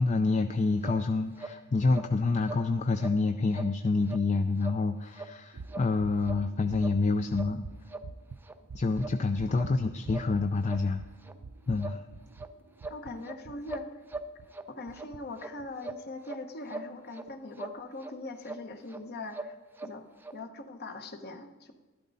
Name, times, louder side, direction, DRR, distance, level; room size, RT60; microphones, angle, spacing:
voice 1, 0.0-7.6 8.7-11.0 11.7-12.0, left 3 dB, 35° left, 8 dB, 0.4 m, -27 dB
sound 1, 0.8-1.0 1.4-1.5 1.9-2.1 2.4-2.6 3.0-3.2 3.5-3.7 4.1-4.2 4.6-4.8 5.1-5.3 5.7-5.9 6.2-6.4 6.8-7.0 7.3-7.5 7.9-8.0 8.4-8.5 9.0-9.2 9.5-9.7 10.1-10.3 10.7-10.8 11.2-11.3 11.8-12.0 12.4-12.5 12.8-13.4 13.7-14.7 14.9-15.1 15.4-15.5 15.8-16.4 16.7-17.2 17.6-17.8 18.0-18.1 18.4-18.6 18.9-19.0 19.3-19.9 20.2-20.3, right 2 dB, 10° right, 0.6 m, -40 dB
sound 2, 5.5-14.5 14.9-15.2 15.6-15.9, right 4 dB, 70° right, 0.5 m, -47 dB
voice 2, 9.5-9.8 12.9-14.0 14.7-20.1 20.3-21.7, left 2 dB, 50° left, 7 dB, 1.0 m, -42 dB
12.0 x 12.0 x 4.1 m, 1.2 s
head